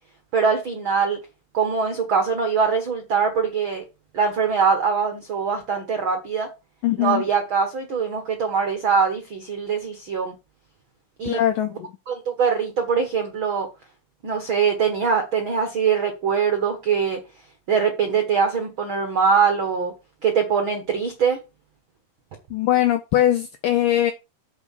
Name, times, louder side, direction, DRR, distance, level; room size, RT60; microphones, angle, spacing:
voice 1, 0.3-1.2 1.5-3.8 4.1-6.5 7.0-10.3 11.2-11.4 12.1-13.7 14.2-17.2 17.7-19.9 20.2-21.4, right 6 dB, 85° right, 1.1 m, -22 dB
voice 2, 6.8-7.2 11.2-11.9 22.5-24.1, left 12 dB, 85° left, 1.9 m, -21 dB
8.0 x 4.6 x 7.1 m
omnidirectional pair, 4.7 m